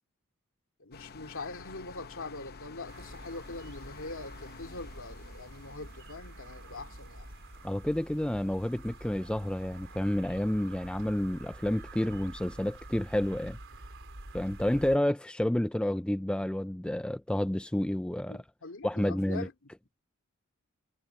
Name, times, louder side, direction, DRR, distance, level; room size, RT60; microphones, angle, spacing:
voice 1, 0.8-7.3 18.3-19.5, left 3 dB, 60° left, 3.0 m, -43 dB
sound 1, 0.9-13.3, left 4 dB, 45° left, 0.8 m, -53 dB
sound 2, 2.9-15.0, right 2 dB, 60° right, 4.9 m, -48 dB
voice 2, 7.6-13.6 14.3-18.4 18.8-19.5, left 1 dB, 5° left, 0.4 m, -30 dB
head